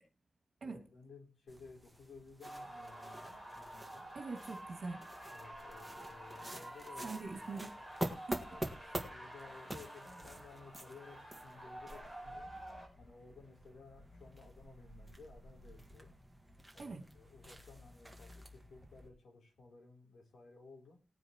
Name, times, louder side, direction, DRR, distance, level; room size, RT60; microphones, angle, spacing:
voice 1, 0.6-4.1 5.3-7.2 8.5-8.7 8.9-12.6 13.0-16.2 16.7-21.1, left 4 dB, 80° left, 3.7 m, -57 dB
sound 1, 1.5-19.1, right 1 dB, 5° right, 1.9 m, -48 dB
sound 2, 2.4-12.9, right 1 dB, 15° left, 4.2 m, -50 dB
voice 2, 4.1-5.0 7.0-7.7 8.3-8.4 8.8-9.0 16.8-17.0, right 4 dB, 60° right, 2.5 m, -43 dB
19.0 x 9.6 x 3.1 m
wide cardioid pair, 160°, 0 cm